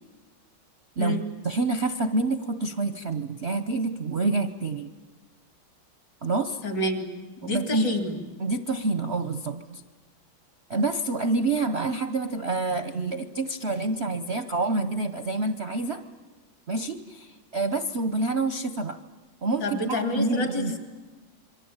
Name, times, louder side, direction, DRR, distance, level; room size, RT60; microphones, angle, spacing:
voice 1, 1.0-4.9 6.2-6.6 7.4-7.8 8.4-9.8 10.7-16.0 16.7-19.0 19.4-20.7, right 3 dB, 45° right, 9 dB, 0.9 m, -27 dB
voice 2, 6.6-7.1 7.4-8.2 19.6-20.8, left 2 dB, 60° left, 6 dB, 3.8 m, -28 dB
27.5 x 23.0 x 8.8 m, 1.3 s
omnidirectional pair, 2.2 m